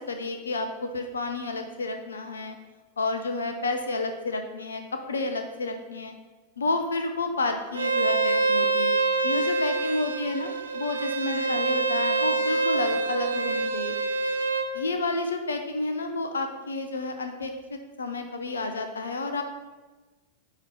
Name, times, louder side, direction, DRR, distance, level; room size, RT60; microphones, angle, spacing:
voice 1, 0.1-2.6 3.0-4.8 5.1-6.1 6.6-8.9 9.2-14.0 14.7-19.4, left 2 dB, 70° left, 6 dB, 0.6 m, -30 dB
Bowed string instrument, 7.7-14.7, right 3 dB, 75° right, 0.6 m, -26 dB
8.9 x 3.1 x 5.4 m, 1.2 s
figure-of-eight pair, 90°, 0 cm